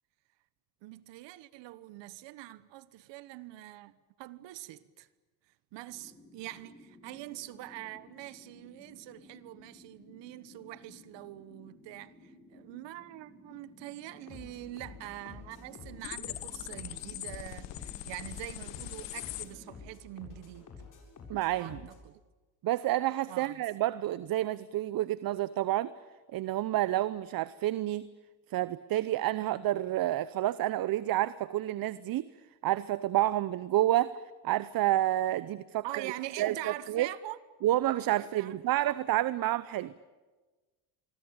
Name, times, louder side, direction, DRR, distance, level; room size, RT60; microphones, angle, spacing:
voice 1, 0.8-5.1 5.7-20.7 21.6-22.2 23.3-23.6 35.8-37.4 38.2-39.0, right 16 dB, 70° right, 1.3 m, -44 dB
sound 1, 5.9-19.9, left 2 dB, 20° left, 6.2 m, -56 dB
sound 2, 14.3-22.0, left 4 dB, 40° left, 7.6 m, -50 dB
sound 3, 16.0-19.5, left 16 dB, 70° left, 1.7 m, -41 dB
voice 2, 21.3-21.8 22.6-25.9 26.3-28.1 28.5-32.3 32.6-34.2 34.4-36.1 36.4-37.1 37.6-39.9, right 14 dB, 50° right, 0.8 m, -29 dB
25.0 x 23.5 x 8.8 m
supercardioid pair, 90°, 46 cm